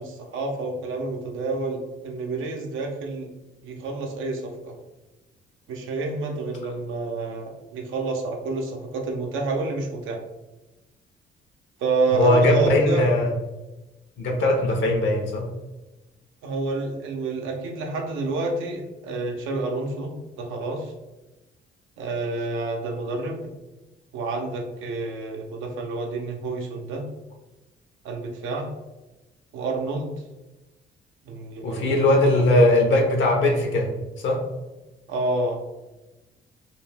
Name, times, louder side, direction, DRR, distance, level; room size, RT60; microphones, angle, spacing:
voice 1, 0.0-3.3 3.6-4.7 5.7-10.2 11.8-13.1 16.4-20.9 22.0-23.5 24.1-27.0 28.0-28.7 29.5-30.1 31.3-32.7 35.1-35.6, right 3 dB, 85° right, 2 dB, 0.6 m, -29 dB
voice 2, 12.1-13.3 14.2-15.5 31.6-33.9 34.2-34.4, left 1 dB, 70° left, 1 dB, 0.8 m, -20 dB
2.6 x 2.1 x 3.3 m, 1.0 s
cardioid pair, 90°, 20 cm